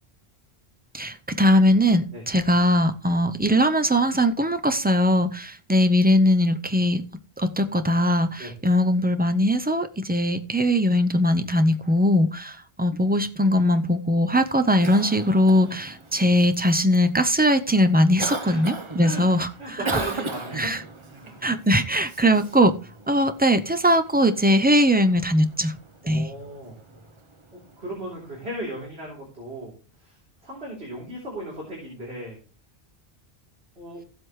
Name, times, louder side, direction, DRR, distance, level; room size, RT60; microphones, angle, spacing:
voice 1, 0.9-7.0 7.4-20.0 20.6-20.8 21.4-22.8 23.1-25.7 26.1-26.3, equal, 10° right, 0.4 m, -20 dB
Cough, 14.4-28.8, right 3 dB, 30° right, 0.8 m, -38 dB
voice 2, 18.4-19.2 19.6-20.8 21.1-21.5 26.0-26.7 27.5-32.4 33.8-34.0, right 1 dB, 80° right, 3.7 m, -37 dB
15.5 x 7.8 x 3.2 m
omnidirectional pair, 1.1 m